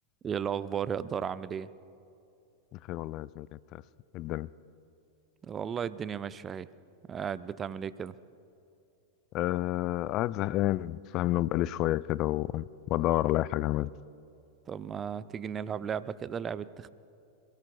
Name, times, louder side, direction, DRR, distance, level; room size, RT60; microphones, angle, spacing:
voice 1, 0.2-1.7 5.4-6.7 7.1-8.1 14.7-16.9, right 7 dB, 25° right, 0.5 m, -35 dB
voice 2, 2.9-3.6 4.1-4.5 9.3-12.6 12.9-13.9, left 15 dB, 40° left, 0.3 m, -29 dB
27.5 x 16.5 x 2.3 m
figure-of-eight pair, 90°, 0 cm